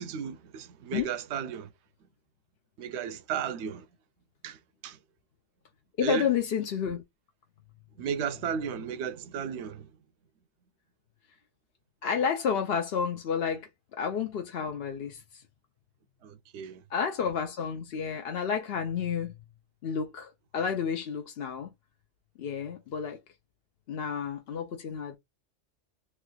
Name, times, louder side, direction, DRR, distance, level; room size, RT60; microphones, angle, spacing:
voice 1, 0.0-1.7 2.8-3.8 4.4-4.6 4.8-5.0 6.0-6.3 8.0-9.9 16.2-16.8, right 7 dB, 75° right, 0.8 m, -34 dB
voice 2, 6.0-7.0 12.0-13.7 14.0-15.4 16.9-19.3 19.8-21.7 22.4-23.2 23.9-25.2, left 7 dB, 60° left, 0.8 m, -30 dB
3.3 x 3.1 x 2.3 m
omnidirectional pair, 1.2 m